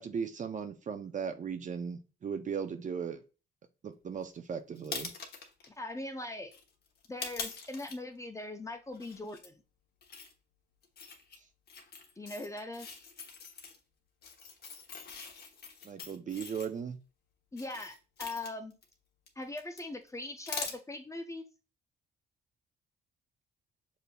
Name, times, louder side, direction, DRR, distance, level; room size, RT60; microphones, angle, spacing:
voice 1, 0.0-3.2 3.8-5.1 15.8-17.0, right 6 dB, 40° right, 8 dB, 0.5 m, -37 dB
sound 1, 4.8-5.7 6.5-8.0 8.9-9.5 10.0-10.3 10.8-11.4 11.7-13.8 14.2-16.7 17.6-18.9 19.3-19.8 20.1-20.2 20.5-20.8, left 5 dB, 55° left, 1.0 m, -43 dB
voice 2, 5.7-6.5 7.1-9.6 12.2-12.9 17.5-18.8 19.4-21.4, left 2 dB, 15° left, 6 dB, 0.5 m, -41 dB
6.7 x 2.8 x 2.2 m, 0.33 s
cardioid pair, 90°, 20 cm